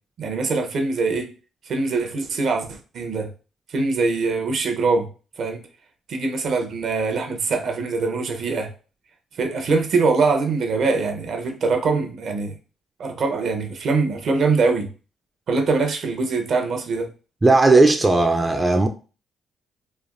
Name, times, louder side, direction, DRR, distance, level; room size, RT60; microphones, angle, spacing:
voice 1, 0.2-1.3 1.7-3.3 3.7-5.1 5.4-5.6 6.1-8.7 9.4-12.5 13.0-14.9 15.5-17.1, right 4 dB, 65° right, 0.6 m, -23 dB
voice 2, 17.4-18.9, right 3 dB, 20° right, 0.3 m, -16 dB
3.2 x 2.2 x 2.5 m
cardioid pair, 80°, 0 cm